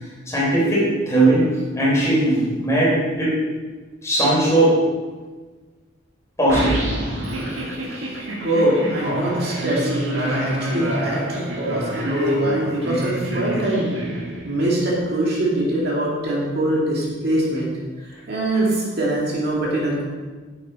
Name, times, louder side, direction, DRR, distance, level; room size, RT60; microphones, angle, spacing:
voice 1, 0.3-1.4 1.8-3.3 4.0-4.8 6.4-6.8, right 1 dB, 15° left, -6 dB, 3.5 m, -18 dB
sound 1, 6.5-14.8, right 1 dB, 80° right, 1.9 m, -27 dB
voice 2, 8.4-13.9 14.4-17.7 18.3-20.0, right 1 dB, 55° right, -4 dB, 2.4 m, -23 dB
10.5 x 8.4 x 4.2 m, 1.3 s
head